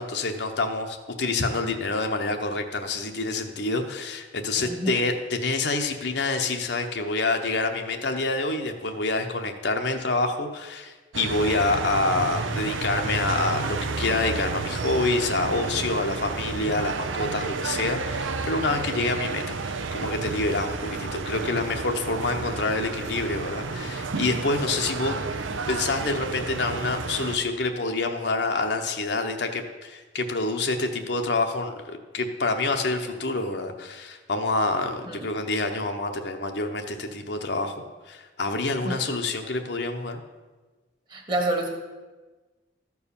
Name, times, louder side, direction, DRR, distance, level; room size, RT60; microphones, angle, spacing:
voice 1, 0.0-25.1 25.7-37.7 38.1-40.2, left 3 dB, 60° left, 4 dB, 0.9 m, -27 dB
voice 2, 4.6-5.0 35.1-35.2 38.8-39.0 41.1-41.7, right 1 dB, 25° right, 2 dB, 1.4 m, -28 dB
sound 1, 11.1-27.4, right 4 dB, 85° right, 0.7 m, -31 dB
13.5 x 4.7 x 7.0 m, 1.3 s
head